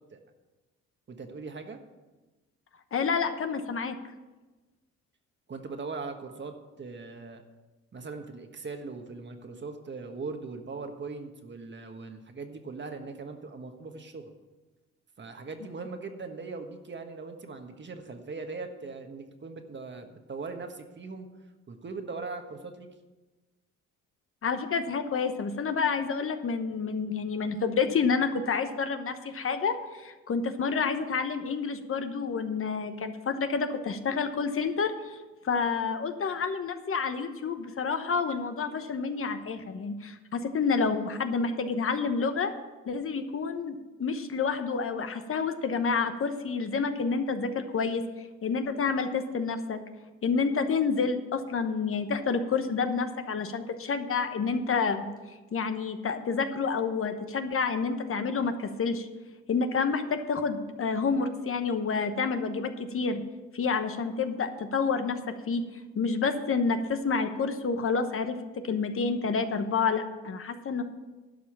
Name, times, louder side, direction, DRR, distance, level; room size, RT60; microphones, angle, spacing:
voice 1, 1.1-1.8 5.5-7.4 7.9-14.3 15.2-21.3 21.7-22.9, right 4 dB, 40° right, 6 dB, 1.4 m, -40 dB
voice 2, 2.9-3.9 24.4-42.5 42.9-48.0 48.4-49.8 50.2-55.1 55.5-59.1 59.5-63.2 63.5-65.6 66.0-70.8, left 5 dB, 45° left, 8 dB, 1.1 m, -29 dB
11.5 x 5.6 x 8.5 m, 1.2 s
cardioid pair, 90°, 30 cm